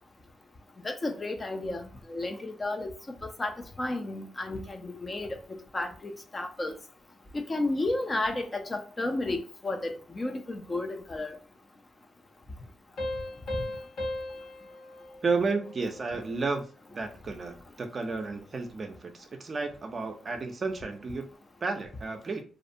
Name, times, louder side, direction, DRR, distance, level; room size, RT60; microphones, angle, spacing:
voice 1, 0.8-2.9 3.2-6.7 7.3-11.4, left 2 dB, 25° left, 0.4 m, -32 dB
Piano, 13.0-16.3, left 1 dB, 65° left, 0.9 m, -37 dB
voice 2, 15.2-21.3 21.6-22.4, right 4 dB, 35° right, 0.4 m, -32 dB
2.5 x 2.1 x 2.6 m
cardioid pair, 110°, 0 cm